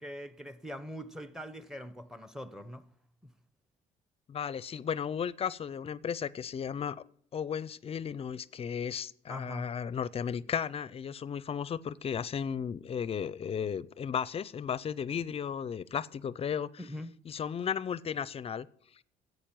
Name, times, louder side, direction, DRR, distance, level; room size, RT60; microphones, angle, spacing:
voice 1, 0.0-2.9 3.2-3.3 9.3-9.7 16.8-17.1, equal, 5° right, 0.9 m, -42 dB
voice 2, 4.3-7.0 7.3-16.8 17.3-18.7, left 7 dB, 40° left, 0.5 m, -35 dB
10.0 x 8.2 x 8.9 m
cardioid pair, 95°, 16 cm